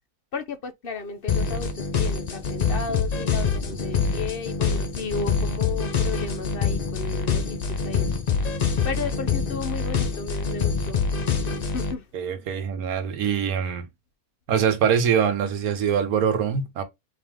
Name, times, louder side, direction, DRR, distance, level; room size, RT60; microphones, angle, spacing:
voice 1, 0.3-8.2 8.8-11.0 11.6-12.0, left 5 dB, 50° left, 0.7 m, -34 dB
sound 1, 1.3-11.9, left 5 dB, 85° left, 0.3 m, -25 dB
Wind / Thunder, 2.6-10.9 11.1-11.2, equal, 35° left, 1.3 m, -44 dB
voice 2, 12.1-13.9 14.5-16.8, right 7 dB, 70° right, 1.4 m, -23 dB
4.4 x 3.3 x 3.6 m
omnidirectional pair, 1.6 m